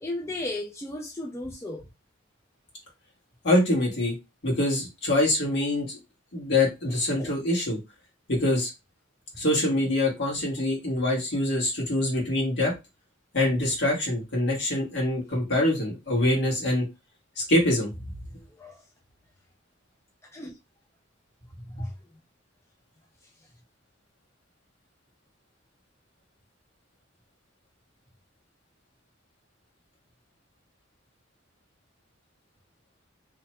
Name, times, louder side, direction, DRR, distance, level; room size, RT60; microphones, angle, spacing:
voice 1, 0.0-1.8 7.2-7.3 18.4-18.8 20.3-20.5, left 2 dB, 15° left, 0.4 m, -35 dB
voice 2, 3.4-4.1 4.4-6.0 6.3-7.8 8.3-8.7 9.4-12.7 13.3-16.8 17.4-17.9 21.8-21.9, left 1 dB, 60° left, 1.4 m, -24 dB
2.9 x 2.1 x 3.0 m
head